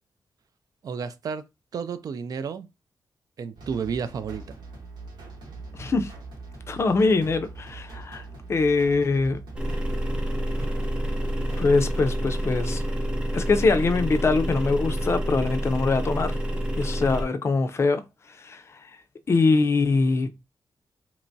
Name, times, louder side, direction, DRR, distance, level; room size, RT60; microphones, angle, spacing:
voice 1, 0.8-1.5 1.7-2.7 3.4-4.6, right 6 dB, 55° right, 0.4 m, -31 dB
sound 1, 3.6-12.2, right 3 dB, 90° right, 1.3 m, -42 dB
voice 2, 5.7-6.1 6.7-8.2 8.5-9.4 11.6-12.8 13.3-16.4 16.8-18.0 18.4-18.6 19.3-20.3, left 3 dB, 35° left, 0.4 m, -23 dB
sound 2, 9.5-17.2, equal, 15° right, 0.7 m, -28 dB
3.3 x 2.9 x 2.6 m
wide cardioid pair, 150°, 7 cm